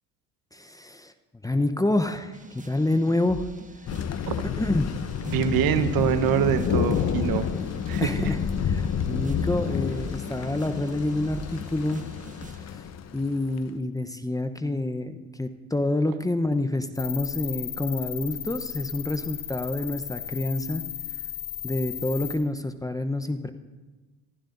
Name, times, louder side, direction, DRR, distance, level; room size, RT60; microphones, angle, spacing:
voice 1, 0.5-1.1 1.4-3.4 4.6-4.9 8.0-8.4 8.6-12.0 12.6-12.8 13.1-20.8 21.6-23.5, left 2 dB, 10° left, 8 dB, 0.9 m, -27 dB
sound 1, 2.3-12.6, right 3 dB, 20° right, 1.5 m, -44 dB
Thunder, 3.9-13.6, left 8 dB, 40° left, 1.0 m, -29 dB
voice 2, 5.3-7.5 7.9-8.3, right 9 dB, 55° right, 11 dB, 1.2 m, -24 dB
sound 2, 17.0-22.4, left 10 dB, 60° left, 5.8 m, -35 dB
28.5 x 15.0 x 2.7 m, 1.3 s
hypercardioid pair, 60°, 40 cm